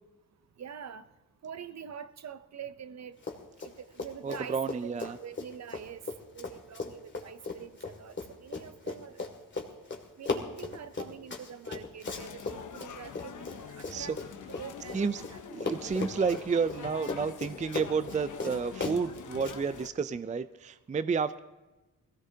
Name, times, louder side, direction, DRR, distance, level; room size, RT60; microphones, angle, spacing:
voice 1, 0.6-1.1 1.4-3.2 3.6-6.0 6.3-9.2 10.2-14.2 14.5-15.4, right 8 dB, 55° right, 13 dB, 0.7 m, -45 dB
Run, 3.2-3.7 4.0-15.3 15.6-19.6, left 4 dB, 35° left, 2.3 m, -37 dB
voice 2, 4.2-5.2 13.9-14.2 14.9-15.2 15.5-21.4, right 5 dB, 25° right, 13 dB, 0.4 m, -31 dB
sound 1, 12.0-19.9, left 7 dB, 65° left, 1.0 m, -45 dB
21.0 x 16.5 x 2.8 m, 1.1 s
cardioid pair, 70°, 33 cm